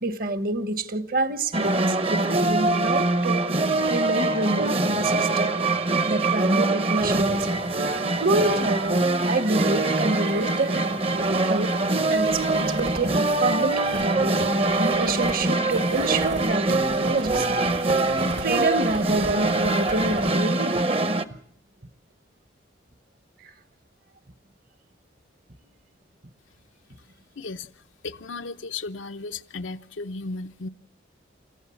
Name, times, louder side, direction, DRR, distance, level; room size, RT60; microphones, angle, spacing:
voice 1, 0.0-3.4 3.9-5.5 6.1-7.5 8.2-11.7 12.1-14.4 14.8-17.6 18.4-20.8, right 2 dB, 45° right, 1.2 m, -27 dB
sound 1, 1.5-21.2, right 2 dB, 30° right, 0.8 m, -24 dB
sound 2, 7.0-12.8, right 1 dB, 90° right, 4.8 m, -46 dB
sound 3, 12.1-18.5 18.8-20.3, right 2 dB, 75° right, 2.1 m, -37 dB
voice 2, 27.4-27.7 28.0-30.7, left 3 dB, 80° left, 0.8 m, -35 dB
29.5 x 14.5 x 7.0 m
head